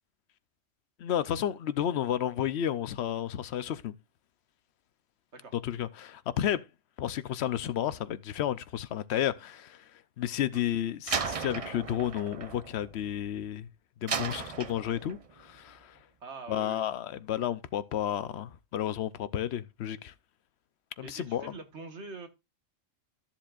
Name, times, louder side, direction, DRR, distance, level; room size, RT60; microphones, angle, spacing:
voice 1, 1.0-3.9 5.5-6.6 7.0-9.8 10.2-13.7 14.0-16.0 16.5-20.1 21.0-21.5, left 11 dB, 65° left, 0.9 m, -32 dB
Slam, 11.1-13.5 14.1-15.3, right 6 dB, 40° right, 0.5 m, -35 dB
voice 2, 16.2-16.8 21.0-22.3, right 3 dB, 65° right, 1.7 m, -44 dB
13.5 x 7.2 x 2.4 m
omnidirectional pair, 1.3 m